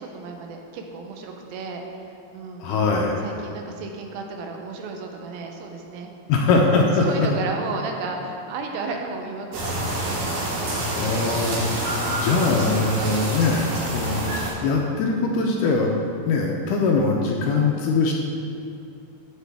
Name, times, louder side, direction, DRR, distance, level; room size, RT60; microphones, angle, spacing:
voice 1, 0.0-2.7 3.2-6.1 7.0-10.6, right 4 dB, 85° right, 3 dB, 2.6 m, -33 dB
voice 2, 2.6-3.2 6.3-7.3 10.9-14.2 14.6-15.9 16.3-18.1, left 3 dB, 80° left, 0 dB, 2.0 m, -22 dB
sound 1, 9.5-14.5, right 1 dB, 70° right, 3.1 m, -27 dB
14.0 x 5.1 x 3.4 m, 2.6 s
omnidirectional pair, 4.2 m